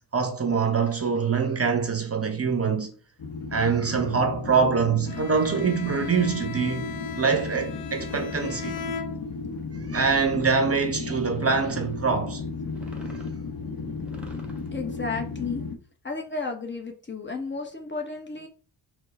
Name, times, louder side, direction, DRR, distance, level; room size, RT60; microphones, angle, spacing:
voice 1, 0.1-3.0 3.5-8.8 9.9-12.4, right 5 dB, 30° right, 0.8 m, -24 dB
sound 1, 3.2-15.8, left 4 dB, 50° left, 0.9 m, -35 dB
Bowed string instrument, 5.1-9.7, left 4 dB, 75° left, 0.7 m, -37 dB
sound 2, 8.0-9.2 9.8-10.6 11.2-12.0 12.6-13.4 14.0-14.7, equal, 5° right, 1.4 m, -46 dB
voice 2, 14.7-15.7 16.0-18.5, left 4 dB, 25° left, 0.9 m, -33 dB
4.4 x 2.3 x 4.1 m
cardioid pair, 65°, 44 cm